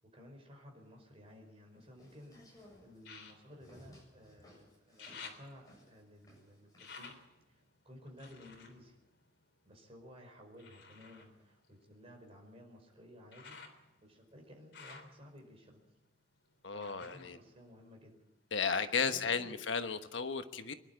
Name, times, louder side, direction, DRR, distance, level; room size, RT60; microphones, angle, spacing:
voice 1, 0.0-7.2 7.5-8.9 9.6-13.6 14.0-15.8 16.7-18.2 19.0-19.6, equal, 35° right, 2 dB, 5.2 m, -55 dB
sound 1, 0.8-2.2 3.0-4.5 4.8-9.9 10.6-18.4 18.7-19.6 20.0-20.1, left 5 dB, 65° left, 3.7 m, -56 dB
sound 2, 1.8-7.2, equal, 20° left, 7.4 m, -60 dB
voice 2, 16.6-17.4 18.5-20.7, left 5 dB, 85° left, 8 dB, 1.3 m, -34 dB
24.5 x 11.5 x 9.4 m, 0.97 s
head